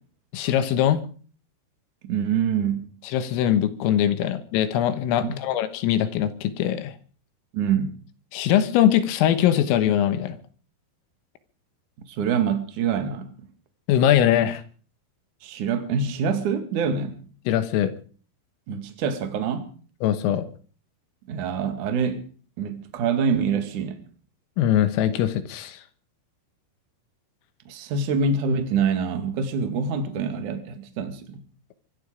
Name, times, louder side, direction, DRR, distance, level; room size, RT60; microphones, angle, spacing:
voice 1, 0.3-1.0 3.1-7.0 8.3-10.4 13.9-14.6 17.5-17.9 20.0-20.5 24.6-25.8, left 10 dB, 80° left, 3.8 m, -22 dB
voice 2, 2.0-2.9 5.3-5.4 7.5-8.0 12.1-13.3 15.4-17.2 18.7-19.7 21.3-22.3 22.6-24.1 27.7-31.4, right 6 dB, 50° right, 2.8 m, -25 dB
24.5 x 11.5 x 5.0 m
omnidirectional pair, 5.9 m